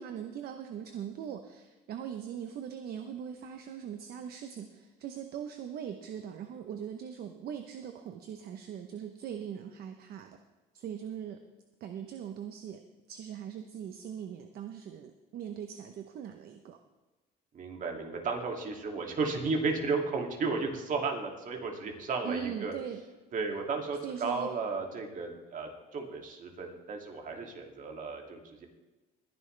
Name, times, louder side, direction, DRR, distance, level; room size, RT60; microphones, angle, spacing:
voice 1, 0.0-10.3 10.7-11.4 11.8-12.8 13.1-16.8 22.2-23.0 24.0-24.5, right 8 dB, 65° right, 7 dB, 0.9 m, -40 dB
voice 2, 17.5-22.7 23.3-28.7, right 4 dB, 50° right, 2 dB, 2.6 m, -34 dB
20.5 x 10.5 x 3.4 m, 1.2 s
cardioid pair, 110°, 17 cm